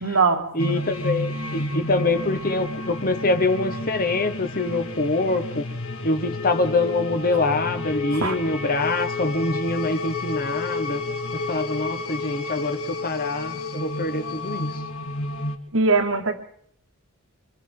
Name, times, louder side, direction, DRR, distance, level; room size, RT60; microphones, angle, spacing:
voice 1, 0.0-0.8 8.2-8.3 15.7-16.4, right 4 dB, 80° right, 2.2 m, -21 dB
voice 2, 0.5-5.7 6.0-11.0 11.3-14.7, left 2 dB, 45° left, 1.4 m, -25 dB
sound 1, 0.6-15.6, left 2 dB, 80° left, 1.9 m, -30 dB
27.0 x 25.5 x 3.9 m
head